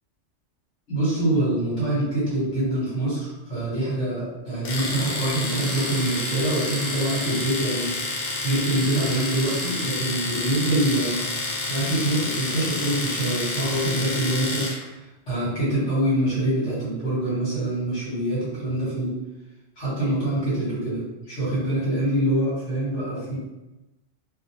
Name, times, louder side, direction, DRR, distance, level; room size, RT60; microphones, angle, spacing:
voice 1, 0.9-7.9 8.4-11.3 11.7-14.9 15.3-19.1 19.8-23.4, right 1 dB, 80° left, -8 dB, 1.6 m, -25 dB
Domestic sounds home sounds, 4.6-14.8, left 2 dB, 60° left, 0.7 m, -29 dB
2.8 x 2.2 x 2.8 m, 1.0 s
omnidirectional pair, 1.2 m